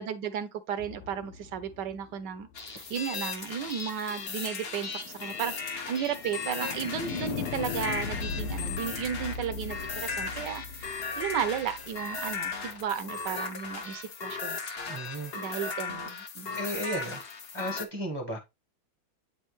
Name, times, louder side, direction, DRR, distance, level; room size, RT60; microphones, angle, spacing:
voice 1, 0.0-14.6 15.3-16.6, right 8 dB, 65° right, 1.3 m, -34 dB
sound 1, 0.8-2.9 4.8-12.8, left 6 dB, 90° left, 1.6 m, -39 dB
sound 2, 2.5-17.8, left 4 dB, 50° left, 0.7 m, -37 dB
voice 2, 14.9-15.3 16.5-17.2 17.5-18.4, equal, 20° right, 0.7 m, -34 dB
8.7 x 4.4 x 3.1 m
omnidirectional pair, 2.2 m